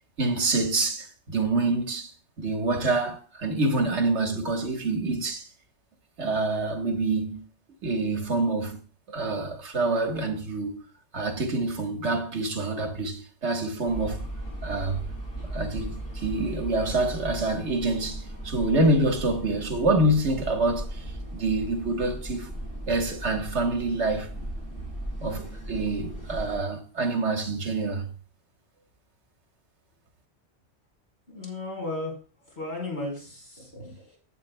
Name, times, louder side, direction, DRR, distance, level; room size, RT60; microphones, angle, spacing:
voice 1, 0.2-2.1 2.4-5.5 6.2-7.4 7.8-8.8 9.1-10.8 11.1-14.3 14.6-15.0 15.5-21.0 21.3-22.5 22.9-24.3 25.2-28.1, right 2 dB, 80° right, 1.7 m, -26 dB
sound 1, 13.9-26.6, right 1 dB, 40° left, 4.8 m, -37 dB
voice 2, 31.3-32.1 32.4-34.2, left 2 dB, 70° left, 4.9 m, -35 dB
16.0 x 7.9 x 2.2 m
omnidirectional pair, 1.2 m